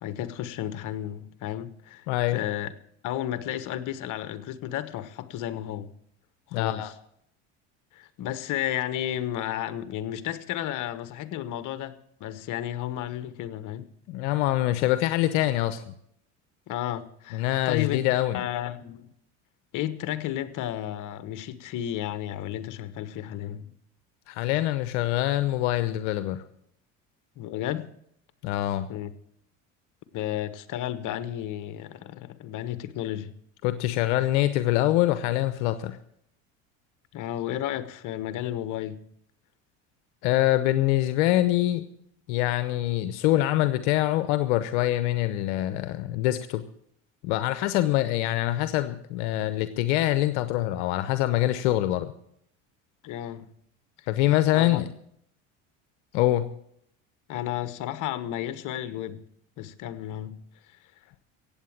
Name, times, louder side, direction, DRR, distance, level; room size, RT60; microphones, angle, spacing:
voice 1, 0.0-2.0 2.3-2.7 3.0-5.9 6.5-6.9 7.9-11.9 12.2-13.8 16.7-18.0 18.3-19.1 19.7-23.7 27.4-27.9 28.9-29.1 30.1-33.3 37.1-39.0 53.0-53.5 54.0-54.1 54.5-54.8 57.3-59.2 59.6-60.4, left 12 dB, 60° left, 1.3 m, -32 dB
voice 2, 2.1-2.4 6.5-6.9 14.1-15.9 17.3-18.4 24.3-26.4 28.4-28.9 33.6-36.0 40.2-41.8 42.3-46.6 47.2-52.1 54.1-54.9 56.1-56.5, left 14 dB, 80° left, 0.9 m, -24 dB
15.5 x 8.8 x 7.3 m
supercardioid pair, 95°, 35 cm